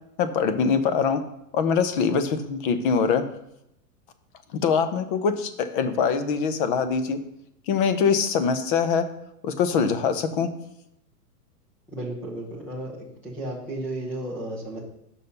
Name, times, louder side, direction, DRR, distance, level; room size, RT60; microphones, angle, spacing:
voice 1, 0.2-1.2 1.5-3.2 4.6-7.2 7.7-9.0 9.4-10.5, left 6 dB, 35° left, 10 dB, 0.7 m, -23 dB
voice 2, 11.9-14.8, right 1 dB, 5° left, -4 dB, 0.4 m, -33 dB
6.3 x 5.4 x 5.5 m, 0.81 s
hypercardioid pair, 150°, 48 cm